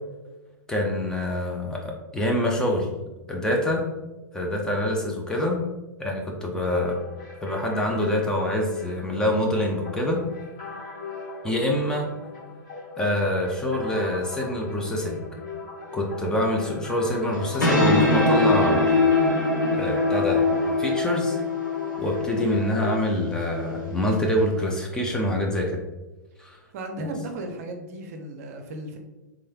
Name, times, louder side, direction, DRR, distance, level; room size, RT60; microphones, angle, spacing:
voice 1, 0.7-2.9 3.3-3.8 4.3-5.6 6.0-7.0 7.4-10.2 11.4-12.1 13.0-15.2 15.9-18.9 19.7-20.4 20.8-21.4 22.0-25.8 26.4-26.6 27.0-27.1, left 1 dB, 5° left, -1 dB, 0.5 m, -25 dB
sound 1, 6.7-22.9, left 3 dB, 40° left, 1.2 m, -39 dB
sound 2, 17.3-24.5, left 2 dB, 75° left, 0.8 m, -23 dB
voice 2, 26.7-29.0, right 2 dB, 50° right, 4 dB, 0.6 m, -35 dB
3.6 x 3.1 x 2.3 m, 1.1 s
figure-of-eight pair, 105°, 10 cm